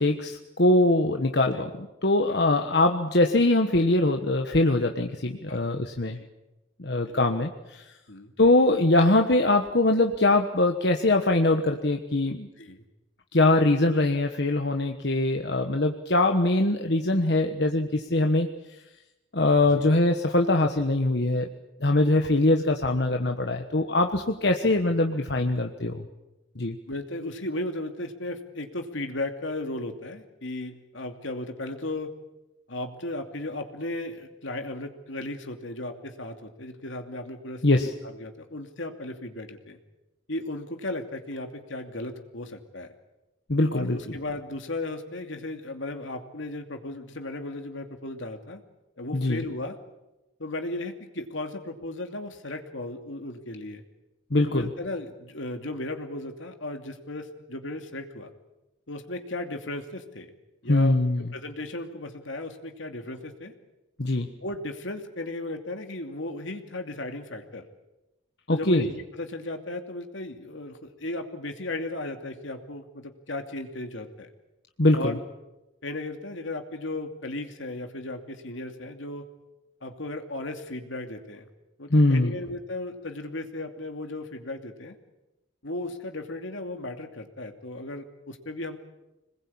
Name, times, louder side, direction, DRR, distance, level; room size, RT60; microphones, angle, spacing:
voice 1, 0.0-6.2 6.8-7.9 8.4-12.5 13.3-18.5 19.3-21.5 21.8-26.1 26.6-26.8 37.6-37.9 43.5-44.0 49.1-49.4 54.3-54.7 60.7-61.3 64.0-64.3 68.5-68.8 74.8-75.2 81.9-82.3, left 2 dB, 55° left, 4 dB, 1.3 m, -22 dB
voice 2, 5.5-5.8 6.2-6.3 7.0-7.3 8.1-8.3 12.6-12.8 19.6-19.8 26.9-32.1 32.7-37.9 38.2-39.8 40.3-42.9 43.7-48.6 49.0-49.8 50.4-53.8 54.4-58.3 58.9-60.3 60.6-61.0 61.3-63.5 64.4-67.6 68.5-74.3 74.9-75.2 75.8-79.2 79.8-81.5 81.8-85.0 85.6-88.8, left 2 dB, 75° left, 5 dB, 2.7 m, -35 dB
26.5 x 20.5 x 8.7 m, 1.0 s
head